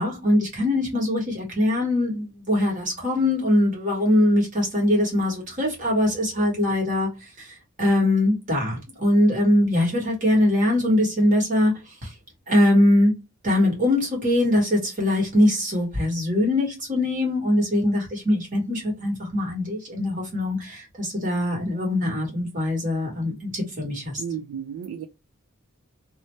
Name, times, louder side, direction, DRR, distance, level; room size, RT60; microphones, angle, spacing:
voice 1, 0.0-12.1 12.5-13.1 13.4-24.2, left 1 dB, 40° right, 1.3 m, -22 dB
voice 2, 24.2-25.1, right 7 dB, 80° right, 0.3 m, -33 dB
2.7 x 2.1 x 3.1 m
head